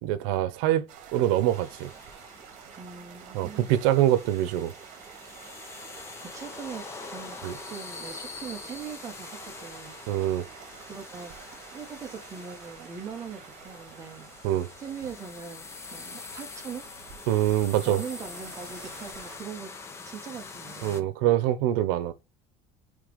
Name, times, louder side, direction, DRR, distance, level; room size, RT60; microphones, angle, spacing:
voice 1, 0.0-0.9 1.1-1.9 3.3-4.7 7.4-7.5 10.1-10.5 14.4-14.7 17.3-18.0 20.8-22.1, right 13 dB, 80° right, 0.9 m, -24 dB
sound 1, 0.9-19.4, right 8 dB, 50° right, 3.3 m, -49 dB
sound 2, 1.5-21.0, left 4 dB, 15° left, 0.7 m, -44 dB
voice 2, 2.7-3.8 5.7-5.8 6.2-10.0 10.9-11.3 11.7-14.3 14.8-15.6 15.9-16.9 17.8-19.7 20.0-21.1, right 6 dB, 20° right, 1.4 m, -41 dB
7.7 x 3.4 x 5.2 m
cardioid pair, 180°, 15 cm